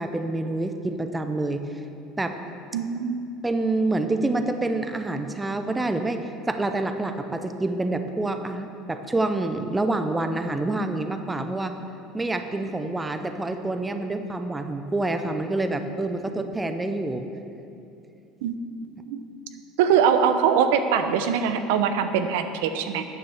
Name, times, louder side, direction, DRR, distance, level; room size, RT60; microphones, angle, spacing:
voice 1, 0.0-1.6 2.2-2.4 3.4-11.7 12.1-17.3, right 2 dB, 10° right, 7 dB, 0.6 m, -27 dB
voice 2, 2.7-3.3 18.4-19.2 19.8-23.0, right 7 dB, 85° right, 8 dB, 0.7 m, -23 dB
9.4 x 7.1 x 7.2 m, 2.7 s
cardioid pair, 140°, 0 cm